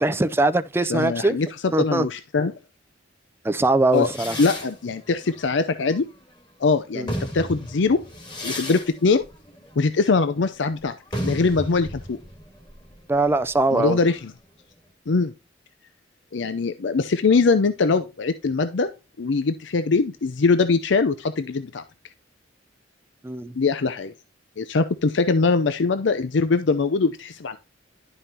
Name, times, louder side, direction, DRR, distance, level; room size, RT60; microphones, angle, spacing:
voice 1, 0.0-1.4 1.7-2.1 3.4-4.4 6.9-7.1 13.1-14.0 23.2-23.5, right 2 dB, 15° right, 0.4 m, -21 dB
voice 2, 0.9-2.5 3.9-4.1 4.4-6.1 6.6-8.0 8.4-9.2 9.8-10.9 11.2-12.2 13.7-14.3 15.1-15.3 16.3-18.9 19.2-21.8 23.5-24.1 24.6-27.6, left 4 dB, 65° left, 0.6 m, -22 dB
sound 1, 3.9-6.4 6.9-14.4, equal, 25° left, 2.3 m, -35 dB
11.0 x 5.6 x 2.8 m
head